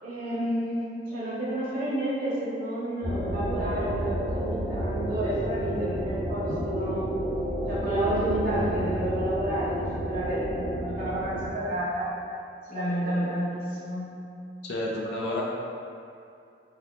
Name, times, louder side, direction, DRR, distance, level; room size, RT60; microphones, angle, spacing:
voice 1, 0.0-7.1 7.7-9.8 10.1-12.1 12.7-14.1, right 1 dB, 50° right, -10 dB, 0.9 m, -30 dB
sound 1, 3.0-11.5, right 1 dB, 15° left, 0.9 m, -30 dB
voice 2, 14.7-15.4, left 1 dB, 75° left, -3 dB, 0.4 m, -30 dB
2.8 x 2.3 x 3.6 m, 2.5 s
head